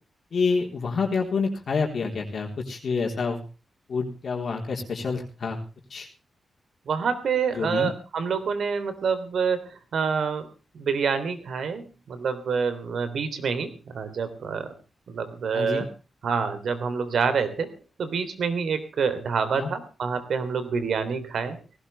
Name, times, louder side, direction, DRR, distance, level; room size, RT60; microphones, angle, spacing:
voice 1, 0.3-3.4 3.9-5.6 5.9-6.1 7.5-7.9 15.5-15.9 19.5-19.7, left 4 dB, 55° left, 0 dB, 3.8 m, -27 dB
voice 2, 6.8-10.5 10.7-14.7 15.1-15.9 16.2-17.7 18.0-21.6, right 6 dB, 75° right, 11 dB, 3.3 m, -27 dB
19.0 x 17.0 x 3.4 m, 0.34 s
wide cardioid pair, 135°, 0 cm